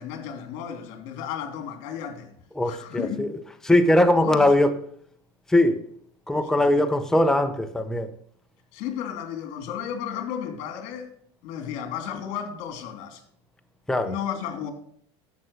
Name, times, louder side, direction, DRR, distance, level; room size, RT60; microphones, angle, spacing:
voice 1, 0.0-2.3 2.7-3.3 4.2-4.5 6.6-6.9 8.7-11.1 11.4-13.2 14.0-14.7, left 8 dB, 60° left, 2.9 m, -33 dB
voice 2, 2.6-3.3 3.6-4.8 5.5-5.8 6.3-8.1 13.9-14.2, left 1 dB, 5° left, 0.8 m, -20 dB
11.5 x 7.7 x 6.6 m
supercardioid pair, 125°, 14 cm